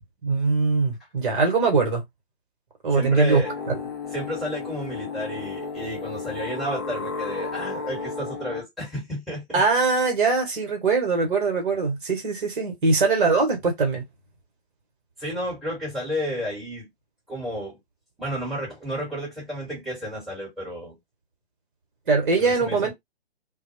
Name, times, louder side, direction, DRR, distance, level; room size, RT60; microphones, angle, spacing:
voice 1, 0.2-2.0 2.8-3.4 9.5-14.0 22.1-22.9, right 4 dB, 50° right, 1.0 m, -22 dB
voice 2, 2.9-3.5 4.1-9.6 15.2-16.9 17.3-17.8 18.2-21.0 22.4-22.9, equal, ahead, 1.1 m, -32 dB
sound 1, 3.4-8.6, left 4 dB, 25° left, 0.5 m, -33 dB
2.2 x 2.0 x 3.0 m
figure-of-eight pair, 130°, 33 cm